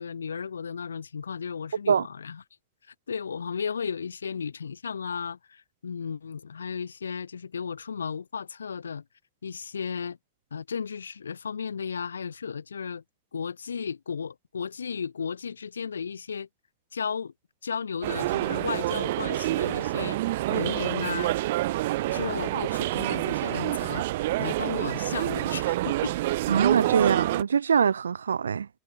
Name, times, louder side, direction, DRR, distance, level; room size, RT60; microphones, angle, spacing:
voice 1, 0.0-2.4 2.9-9.0 9.4-10.2 10.5-13.0 13.3-16.5 16.9-17.3 17.6-20.2 20.5-21.3 22.1-24.1 24.4-26.2, left 6 dB, 85° left, 4.8 m, -34 dB
sound 1, 18.0-27.4, right 17 dB, 65° right, 1.7 m, -27 dB
voice 2, 26.5-28.7, right 7 dB, 85° right, 1.6 m, -23 dB
hypercardioid pair, 95°, 0 cm